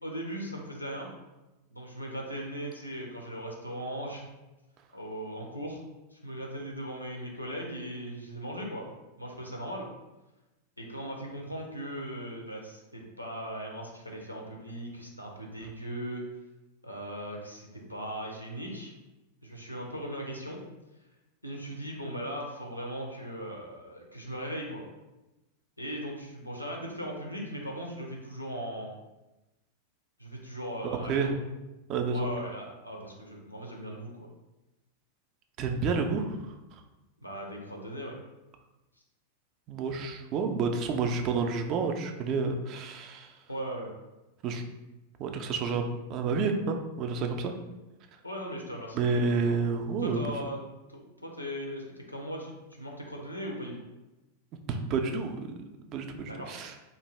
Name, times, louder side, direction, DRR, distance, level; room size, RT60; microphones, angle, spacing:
voice 1, 0.0-1.1 1.7-4.3 4.9-5.8 6.1-8.9 9.2-9.9 10.8-16.2 16.8-18.9 19.4-20.6 21.4-24.8 25.8-28.9 30.2-31.3 32.1-34.3 37.2-38.2 43.5-43.9 48.2-49.6 50.0-50.6 50.9-53.8 56.3-56.5, equal, 85° left, 0 dB, 0.5 m, -38 dB
voice 2, 31.9-32.3 35.6-36.8 39.7-43.4 44.4-44.6 45.2-47.5 48.9-50.2 54.7-56.8, right 4 dB, 35° right, 5 dB, 0.3 m, -30 dB
2.6 x 2.2 x 3.1 m, 1.0 s
figure-of-eight pair, 90°, 0 cm